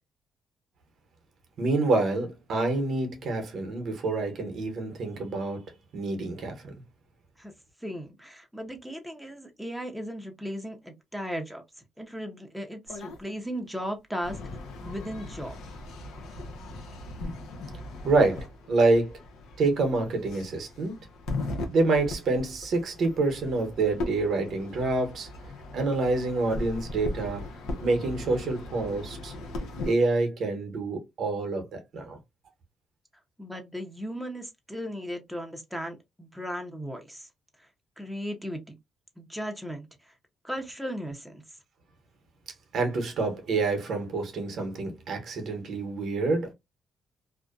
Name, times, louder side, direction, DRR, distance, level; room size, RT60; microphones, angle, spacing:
voice 1, 1.6-5.6 5.9-6.6 18.0-19.2 19.6-21.0 21.7-25.3 25.7-27.5 27.8-29.3 29.8-32.2 42.7-46.5, right 3 dB, 65° right, 0.8 m, -27 dB
voice 2, 7.8-11.6 12.0-14.4 14.8-15.6 33.4-37.3 38.0-38.7 39.2-39.9 40.4-41.4, equal, ahead, 0.7 m, -36 dB
sound 1, 12.9-13.2 14.2-29.9, left 2 dB, 85° left, 0.7 m, -38 dB
2.5 x 2.1 x 2.4 m
cardioid pair, 90°, 0 cm